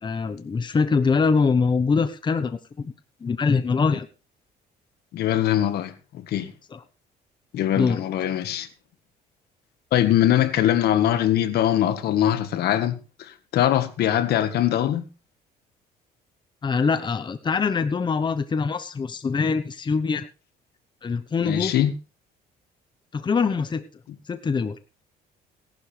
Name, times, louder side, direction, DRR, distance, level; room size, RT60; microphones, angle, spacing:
voice 1, 0.0-2.9 3.2-4.1 6.7-6.8 7.8-8.0 16.6-20.3 21.0-21.7 23.1-23.8 24.3-24.8, left 5 dB, 25° left, 1.1 m, -23 dB
voice 2, 5.1-6.5 7.5-8.7 9.9-15.1 21.4-21.9, left 11 dB, 70° left, 1.7 m, -22 dB
17.5 x 11.5 x 3.4 m
cardioid pair, 110°, 17 cm